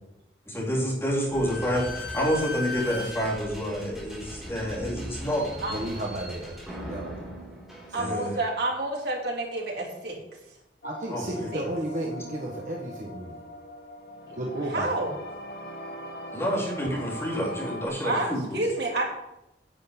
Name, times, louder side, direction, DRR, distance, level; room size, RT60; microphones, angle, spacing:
voice 1, 0.5-5.5 7.9-8.4 11.1-11.5 16.3-18.6, equal, 15° left, -4 dB, 3.1 m, -28 dB
Slam / Squeak, 1.2-8.5, left 1 dB, ahead, 4.0 m, -38 dB
voice 2, 5.7-7.6 8.0-8.2 10.8-13.4 14.3-14.9, right 1 dB, 45° right, -2 dB, 1.6 m, -34 dB
voice 3, 7.9-10.2 11.5-11.6 14.7-15.1 18.0-19.0, right 2 dB, 70° right, -2 dB, 3.5 m, -29 dB
sound 1, 10.8-17.9, equal, 60° left, 2.1 m, -41 dB
10.5 x 6.6 x 8.4 m, 0.90 s
head